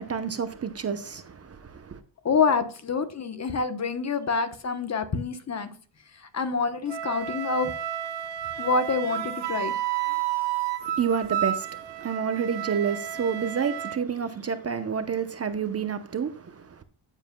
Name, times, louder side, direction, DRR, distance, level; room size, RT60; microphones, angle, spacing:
voice 1, 0.0-2.0 10.8-16.8, right 6 dB, 30° right, 0.8 m, -29 dB
voice 2, 2.2-5.7 6.3-7.7 8.6-9.7, left 4 dB, 35° left, 1.0 m, -26 dB
Wind instrument woodwind instrument, 6.9-14.0, right 11 dB, 60° right, 0.9 m, -31 dB
14.0 x 7.5 x 2.2 m
cardioid pair, 130°, 48 cm